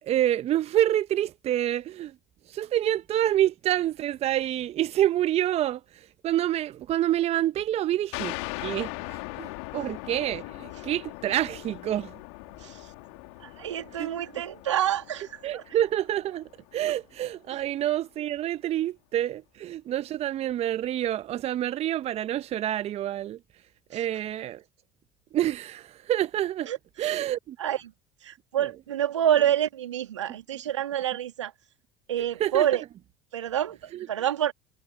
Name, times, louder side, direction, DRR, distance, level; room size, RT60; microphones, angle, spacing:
voice 1, 0.0-2.1 2.5-12.2 14.0-14.1 15.4-23.4 23.9-24.6 25.3-26.7 27.0-27.6 32.4-32.7 33.9-34.1, right 12 dB, 45° right, 1.0 m, -27 dB
sound 1, 8.1-17.3, left 31 dB, 65° left, 2.7 m, -40 dB
voice 2, 12.6-12.9 13.4-15.6 23.9-24.0 26.7-27.2 27.6-27.8 28.2-31.5 32.1-32.8 33.3-34.5, right 11 dB, 80° right, 2.5 m, -28 dB
hypercardioid pair, 70°, 15 cm